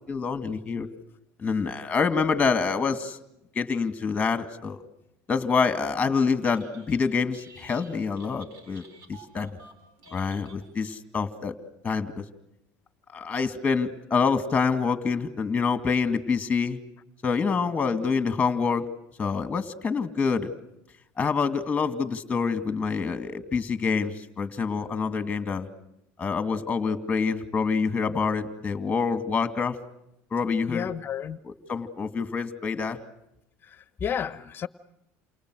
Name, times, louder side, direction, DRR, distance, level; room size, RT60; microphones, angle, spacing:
voice 1, 0.1-0.9 1.4-3.2 3.6-4.8 5.3-8.8 9.1-9.6 10.1-11.5 11.8-12.2 13.1-16.8 17.2-18.9 19.2-20.5 21.2-25.7 26.2-29.8 30.3-30.9 31.4-33.0, left 5 dB, 20° left, 10 dB, 2.4 m, -26 dB
Telephone, 6.3-7.0 7.3-11.0, right 3 dB, 65° right, 7.5 m, -52 dB
voice 2, 30.7-31.4 33.7-34.7, left 8 dB, 35° left, 14 dB, 1.1 m, -32 dB
29.0 x 28.5 x 6.4 m, 0.84 s
cardioid pair, 125°, 6 cm